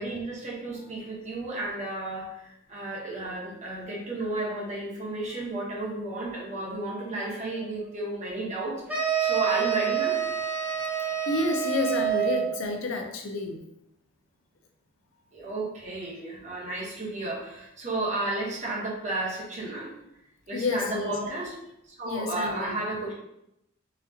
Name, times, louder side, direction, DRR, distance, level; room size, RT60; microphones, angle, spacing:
voice 1, 0.0-10.2 15.3-19.9 20.5-21.5 21.9-23.1, right 2 dB, 40° right, -4 dB, 1.1 m, -33 dB
voice 2, 7.5-7.8 8.3-8.6 11.3-13.6 20.5-21.3 22.0-22.7, left 3 dB, 85° left, 3 dB, 0.6 m, -30 dB
sound 1, 8.9-12.6, right 9 dB, 10° right, 0.8 m, -27 dB
4.0 x 2.4 x 2.8 m, 0.81 s
head